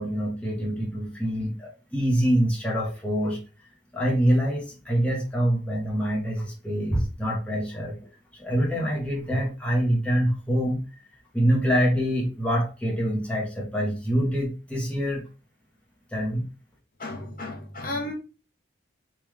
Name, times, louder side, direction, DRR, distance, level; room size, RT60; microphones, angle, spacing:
voice 1, 0.0-3.4 3.9-8.0 8.3-10.8 11.3-15.2 16.1-16.5, equal, 5° left, -2 dB, 0.7 m, -25 dB
voice 2, 17.0-18.1, left 2 dB, 45° left, 3 dB, 0.7 m, -33 dB
3.1 x 2.2 x 3.4 m, 0.32 s
head